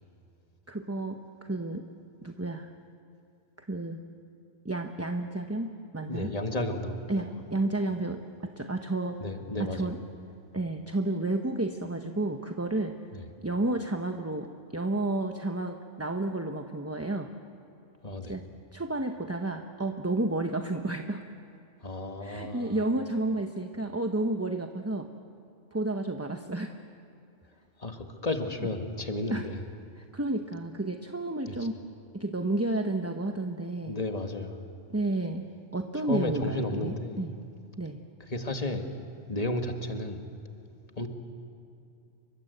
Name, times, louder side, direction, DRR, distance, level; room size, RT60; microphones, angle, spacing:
voice 1, 0.7-1.9 2.2-2.7 3.6-4.0 4.6-6.3 7.1-9.2 9.6-10.0 10.5-12.9 13.4-17.3 18.3-18.4 18.7-21.2 22.2-25.1 25.7-26.8 29.3-29.5 30.1-31.7 32.1-33.9 34.9-35.4 35.7-37.3 37.8-38.0, right 2 dB, 15° right, 5 dB, 0.8 m, -31 dB
voice 2, 6.1-7.3 9.2-9.9 13.1-13.2 18.0-18.4 21.8-22.8 27.8-29.6 31.5-31.6 33.8-34.6 35.9-37.3 38.2-38.9 39.3-40.2 41.0-41.1, left 2 dB, 30° left, 5 dB, 1.9 m, -33 dB
29.0 x 24.0 x 8.1 m, 2.6 s
omnidirectional pair, 1.4 m